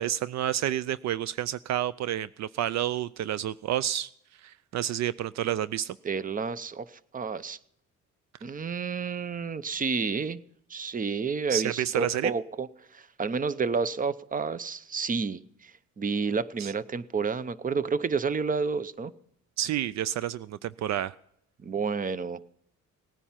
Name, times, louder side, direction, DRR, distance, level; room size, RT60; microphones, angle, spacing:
voice 1, 0.0-4.1 4.4-6.0 11.5-12.3 16.6-16.7 19.6-21.2, right 11 dB, 65° right, 0.4 m, -29 dB
voice 2, 6.0-7.6 8.4-10.4 10.7-19.1 21.6-22.5, right 5 dB, 25° right, 0.7 m, -30 dB
18.0 x 10.0 x 5.8 m
cardioid pair, 90°, 30 cm